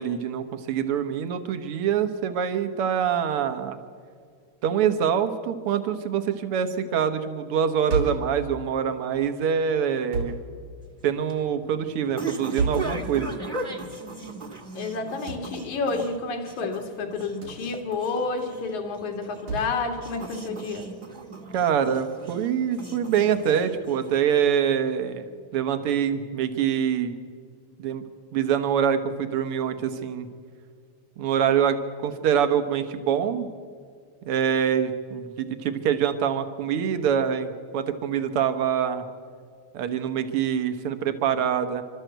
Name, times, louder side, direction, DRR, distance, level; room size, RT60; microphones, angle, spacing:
voice 1, 0.0-3.8 4.6-10.4 11.0-13.3 21.5-25.2 25.5-27.1 27.8-28.0 28.3-30.3 31.2-33.5 34.3-39.0 39.7-41.8, right 8 dB, 60° right, 9 dB, 2.0 m, -25 dB
sound 1, 7.9-8.3 10.1-10.4 12.6-12.9 15.3-15.5 17.4-17.7 19.5-19.7, right 3 dB, 80° right, 5.8 m, -28 dB
sound 2, 10.8-24.4, right 3 dB, 25° right, 1.3 m, -38 dB
voice 2, 14.8-20.9, left 3 dB, 80° left, 4 dB, 3.5 m, -30 dB
27.5 x 13.0 x 8.0 m, 2.2 s
omnidirectional pair, 3.3 m